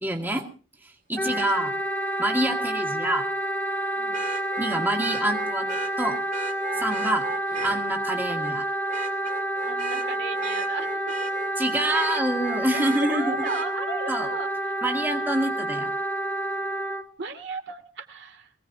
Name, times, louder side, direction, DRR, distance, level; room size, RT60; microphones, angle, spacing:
voice 1, 0.0-0.5 0.8-1.7 2.2-3.2 4.6-6.2 6.8-7.3 7.6-8.6 11.6-13.4 14.1-14.3 14.8-15.9, right 1 dB, 10° right, 2 dB, 2.0 m, -27 dB
voice 2, 1.1-1.7 2.5-2.6 4.0-4.2 6.7-7.0 9.6-11.0 13.0-14.7 17.2-18.5, right 4 dB, 60° right, 6 dB, 2.4 m, -36 dB
Wind instrument woodwind instrument, 1.2-17.0, right 1 dB, 10° left, 1.9 m, -29 dB
Vehicle horn car horn honking, 1.3-1.4 4.1-7.8 8.3-8.5 8.9-11.5 11.9-13.7 15.5-15.6, right 4 dB, 40° right, 2.3 m, -36 dB
24.0 x 17.5 x 2.7 m, 0.38 s
head